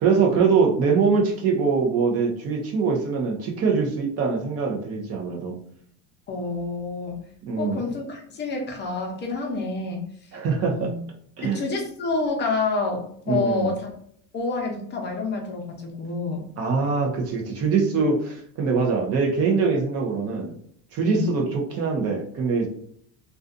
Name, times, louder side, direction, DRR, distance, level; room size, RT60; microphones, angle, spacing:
voice 1, 0.0-5.5 7.5-7.8 10.3-10.9 11.4-11.6 13.3-13.7 16.6-20.5 20.9-22.7, right 5 dB, 40° right, 1 dB, 0.6 m, -23 dB
voice 2, 6.3-7.2 7.6-10.0 10.7-11.0 11.5-13.9 14.3-16.4 21.1-21.3, left 3 dB, 25° left, 1 dB, 0.6 m, -28 dB
2.5 x 2.3 x 2.5 m, 0.66 s
cardioid pair, 140°, 40 cm